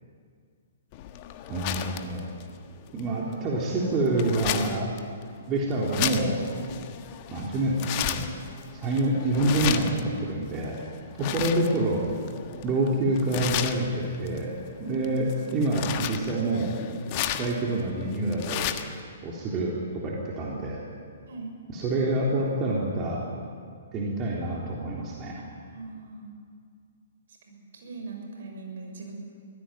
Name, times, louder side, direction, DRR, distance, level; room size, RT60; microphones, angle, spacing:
sound 1, 0.9-19.0, left 11 dB, 35° left, 1.4 m, -35 dB
voice 1, 1.5-2.3 2.9-4.9 5.5-6.4 7.3-8.3 8.8-10.8 11.2-12.0 12.6-14.5 14.8-16.8 17.3-18.7 19.2-20.8 21.7-23.3 23.9-25.4, right 2 dB, 25° right, -3 dB, 3.5 m, -27 dB
voice 2, 11.2-11.6 14.8-15.4 21.3-21.5 25.7-26.3 27.4-29.1, right 4 dB, 55° right, 2 dB, 6.3 m, -41 dB
24.0 x 16.5 x 9.1 m, 2.2 s
figure-of-eight pair, 120°, 0 cm